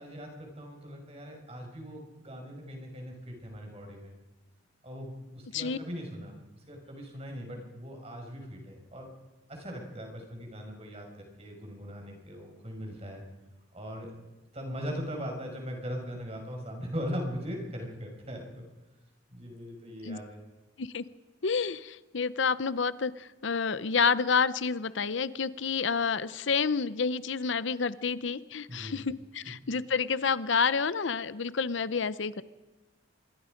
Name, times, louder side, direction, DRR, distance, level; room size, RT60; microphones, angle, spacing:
voice 1, 0.0-4.2 4.8-9.1 9.5-13.2 13.7-14.1 14.5-18.7 19.3-20.4 28.7-29.0 29.5-29.6, equal, 30° right, 2 dB, 5.7 m, -40 dB
voice 2, 21.4-32.4, left 5 dB, 70° left, 16 dB, 0.7 m, -29 dB
26.0 x 22.0 x 5.2 m, 1.1 s
head